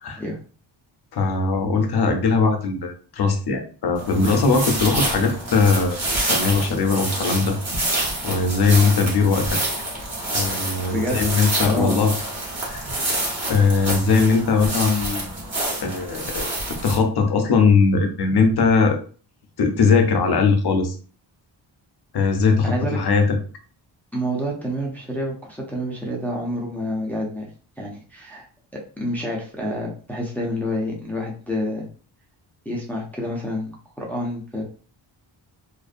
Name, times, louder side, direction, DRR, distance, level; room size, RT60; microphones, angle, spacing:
voice 1, 1.1-6.0 6.3-7.6 8.2-9.6 10.3-12.1 12.7-12.8 13.5-15.3 15.8-16.5 16.8-19.0 19.6-20.9 22.1-23.4, left 4 dB, 55° left, 4 dB, 0.6 m, -20 dB
sound 1, 3.9-17.0, right 1 dB, 35° right, 0.9 m, -27 dB
voice 2, 11.6-12.1 22.6-23.0 24.1-27.5 27.8-28.5 28.7-31.9 32.7-34.6, equal, 5° left, -2 dB, 0.5 m, -28 dB
2.5 x 2.1 x 2.5 m, 0.40 s
wide cardioid pair, 105°, 46 cm